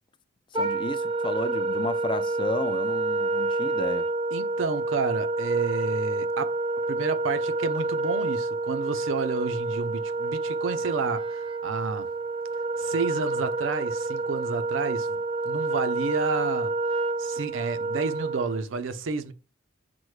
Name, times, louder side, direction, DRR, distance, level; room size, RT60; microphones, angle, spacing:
voice 1, 0.5-4.1, left 3 dB, 25° left, 0.3 m, -32 dB
Wind instrument woodwind instrument, 0.5-18.6, right 2 dB, 25° right, 0.5 m, -28 dB
voice 2, 4.3-6.5 6.9-12.1 12.8-15.2 15.4-16.7 17.2-19.3, right 4 dB, 90° right, 0.5 m, -30 dB
5.9 x 2.1 x 3.1 m
head